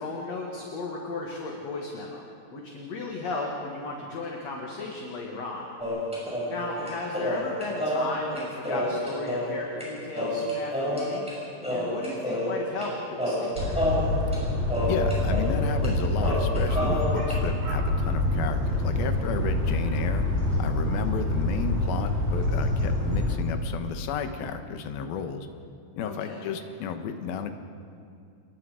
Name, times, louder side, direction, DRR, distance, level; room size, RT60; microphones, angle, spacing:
voice 1, 0.0-2.3 2.5-5.7 6.5-11.3 11.7-13.8 26.0-26.5, left 3 dB, 50° left, -1 dB, 2.5 m, -35 dB
sound 1, 5.8-9.9 10.1-11.3 11.6-12.9 13.2-15.6 15.8-15.9 16.2-17.4, equal, ahead, 6.2 m, -29 dB
sound 2, 13.6-23.4, left 1 dB, 65° right, 6.3 m, -26 dB
voice 2, 14.9-20.3 20.6-25.5 26.0-27.5, left 7 dB, 70° left, 7 dB, 3.0 m, -33 dB
29.0 x 21.0 x 5.0 m, 2.4 s
omnidirectional pair, 4.6 m